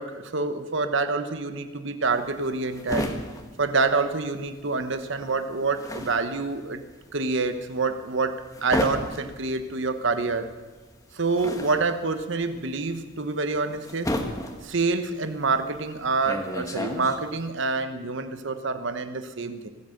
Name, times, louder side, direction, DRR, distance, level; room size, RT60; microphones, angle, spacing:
voice 1, 0.0-3.1 3.6-6.8 7.1-10.5 11.1-14.1 14.6-19.7, right 3 dB, 65° right, 9 dB, 1.1 m, -27 dB
sound 1, 2.1-4.6 4.9-17.5, left 1 dB, 15° left, 1.5 m, -33 dB
24.5 x 8.4 x 6.6 m, 1.3 s
head